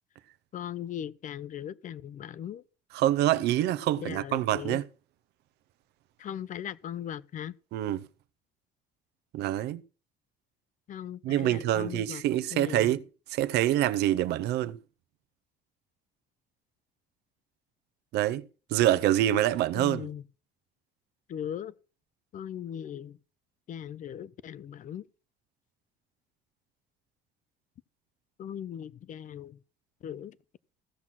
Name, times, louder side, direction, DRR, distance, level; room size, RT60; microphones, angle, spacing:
voice 1, 0.5-2.6 4.0-4.8 6.2-7.5 10.9-12.2 12.5-12.9 19.7-20.2 21.3-21.7 22.3-23.1 23.7-25.0 28.4-29.6 30.0-30.3, left 10 dB, 50° left, 0.6 m, -38 dB
voice 2, 2.9-4.9 7.7-8.1 9.3-9.8 11.2-14.8 18.1-18.4 18.7-20.1, right 13 dB, 80° right, 0.6 m, -26 dB
15.5 x 6.1 x 5.7 m
cardioid pair, 110°, 17 cm